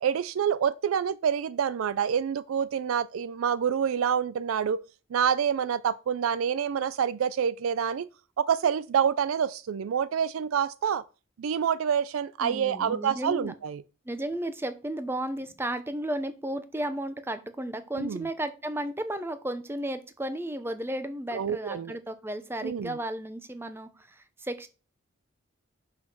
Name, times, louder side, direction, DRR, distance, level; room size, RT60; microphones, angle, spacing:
voice 1, 0.0-4.8 5.1-8.1 8.4-11.0 11.4-13.8 18.0-18.2 21.3-22.0 22.6-23.0, right 8 dB, 85° right, 0.4 m, -27 dB
voice 2, 12.4-13.5 14.1-24.7, right 1 dB, 10° right, 0.7 m, -34 dB
5.7 x 5.3 x 6.0 m
head